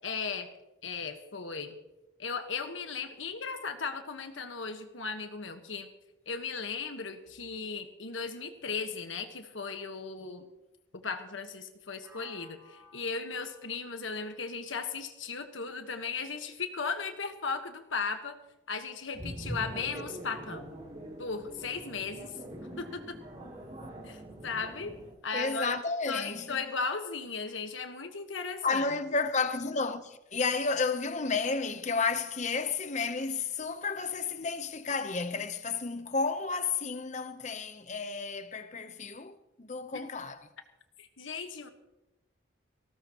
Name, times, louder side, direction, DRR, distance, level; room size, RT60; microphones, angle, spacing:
voice 1, 0.0-0.5 0.8-1.8 2.2-5.9 6.3-10.4 10.9-18.4 18.7-20.7 21.2-22.4 22.8-23.2 24.0-25.0 25.2-25.8 26.1-28.9 41.0-41.7, left 5 dB, 75° left, 1.5 m, -36 dB
sound 1, 12.0-15.9, left 2 dB, 15° right, 3.9 m, -59 dB
sound 2, 19.1-25.1, right 1 dB, 35° right, 3.0 m, -43 dB
voice 2, 25.3-26.6 28.6-40.4, left 4 dB, 35° left, 0.9 m, -32 dB
19.5 x 16.0 x 3.1 m
head